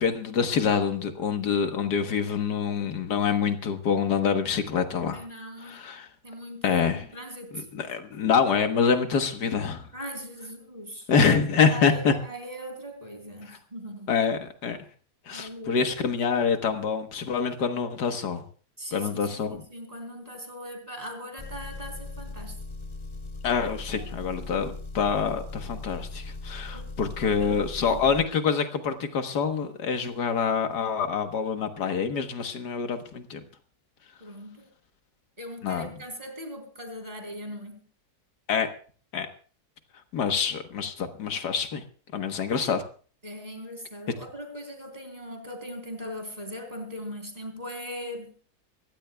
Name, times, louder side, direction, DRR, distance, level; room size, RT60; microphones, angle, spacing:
voice 1, 0.0-5.2 5.6-6.1 6.6-7.0 7.5-9.9 11.1-12.1 13.5-13.6 14.1-14.8 15.3-18.4 18.9-19.6 23.4-33.4 35.6-35.9 38.5-38.7 39.1-39.3 40.1-41.8 42.1-42.8, left 6 dB, 90° left, 7 dB, 1.9 m, -26 dB
voice 2, 5.1-5.8 6.2-7.6 9.9-11.1 11.7-14.1 15.3-16.1 18.8-22.6 23.9-24.7 26.7-26.9 27.2-27.5 27.8-28.0 34.2-34.7 35.4-37.9 43.2-48.3, equal, 25° right, 4 dB, 3.6 m, -40 dB
Engine, 21.4-28.3, left 2 dB, 40° left, 0.4 m, -39 dB
24.0 x 15.5 x 2.3 m, 0.41 s
omnidirectional pair, 1.7 m